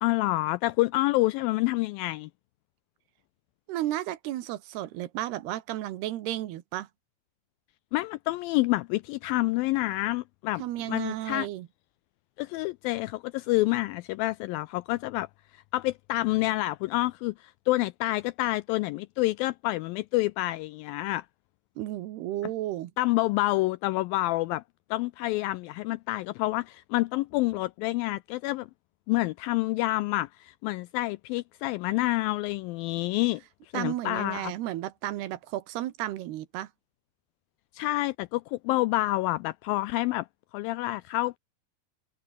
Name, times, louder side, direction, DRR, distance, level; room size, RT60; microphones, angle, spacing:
voice 1, 0.0-2.3 7.9-10.6 10.9-11.5 12.4-15.3 15.5-21.3 23.0-24.6 24.9-28.7 29.1-33.4 33.7-34.5 37.7-40.3 40.5-41.4, left 19 dB, 85° left, 2.1 m, -28 dB
voice 2, 3.7-6.9 10.6-11.7 21.8-22.9 33.7-36.7, right 14 dB, 85° right, 3.3 m, -33 dB
omnidirectional pair, 4.6 m